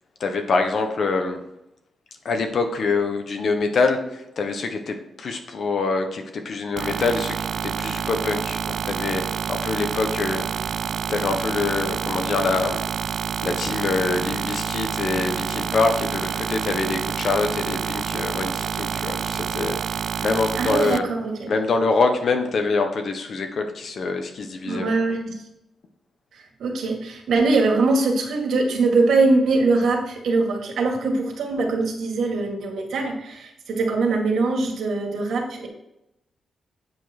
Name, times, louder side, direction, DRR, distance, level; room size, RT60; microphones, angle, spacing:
voice 1, 0.2-1.4 2.2-9.2 9.5-10.4 11.1-12.8 13.4-21.1 21.5-24.9, left 3 dB, 60° left, 5 dB, 1.4 m, -25 dB
sound 1, 6.8-21.0, right 7 dB, 65° right, 0.3 m, -28 dB
voice 2, 20.5-21.5 24.6-25.4 26.3-35.7, right 3 dB, 80° right, 1 dB, 2.1 m, -22 dB
8.8 x 5.3 x 4.4 m, 0.85 s
cardioid pair, 100°, 0 cm